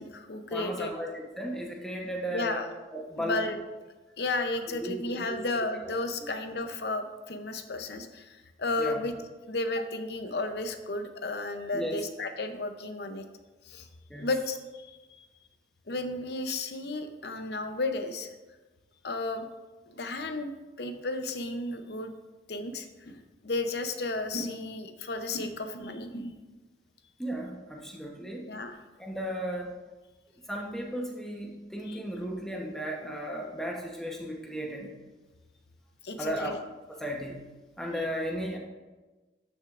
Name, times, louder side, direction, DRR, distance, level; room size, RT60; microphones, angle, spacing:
voice 1, 0.0-0.9 2.3-2.6 3.2-3.6 4.2-9.1 9.5-13.3 13.6-13.9 14.2-15.0 15.9-18.3 19.0-19.5 19.9-20.5 20.8-22.1 22.5-26.4 28.5-28.8 31.9-32.0 36.0-36.6, left 2 dB, 60° left, 7 dB, 0.7 m, -33 dB
voice 2, 0.5-3.4 4.7-4.9 5.2-5.6 6.2-6.3 8.8-9.0 11.7-12.0 14.1-14.3 27.2-28.5 29.0-29.8 30.5-34.9 36.2-36.6 36.9-37.5 37.8-38.6, equal, 5° left, -1 dB, 1.0 m, -35 dB
12.5 x 6.2 x 2.5 m, 1.2 s
head